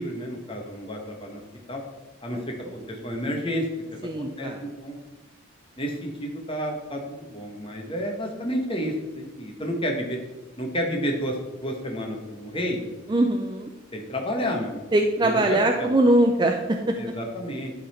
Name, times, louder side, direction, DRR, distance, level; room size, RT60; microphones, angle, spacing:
voice 1, 0.0-1.4 1.7-1.8 2.2-2.4 2.7-3.6 4.2-4.5 4.8-5.0 5.8-10.2 10.6-12.8 13.9-14.8 15.2-15.9 17.0-17.7, equal, 25° left, 1 dB, 1.2 m, -30 dB
voice 2, 4.0-4.6 13.1-13.7 14.9-16.8, right 1 dB, 20° right, 3 dB, 0.4 m, -21 dB
11.0 x 4.0 x 4.3 m, 1.1 s
head